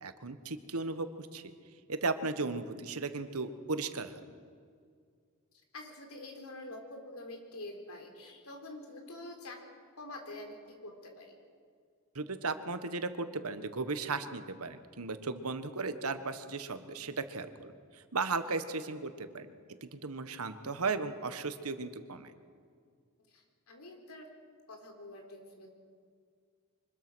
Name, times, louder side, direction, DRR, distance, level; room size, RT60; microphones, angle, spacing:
voice 1, 0.0-1.4 1.9-4.2 12.1-19.5 19.8-22.3, right 3 dB, 80° right, 10 dB, 1.4 m, -36 dB
voice 2, 5.7-9.6 10.0-10.6 10.8-11.4 18.8-18.9 23.3-24.3 24.7-25.7, left 2 dB, 80° left, 4 dB, 3.8 m, -46 dB
24.5 x 21.0 x 6.3 m, 2.1 s
head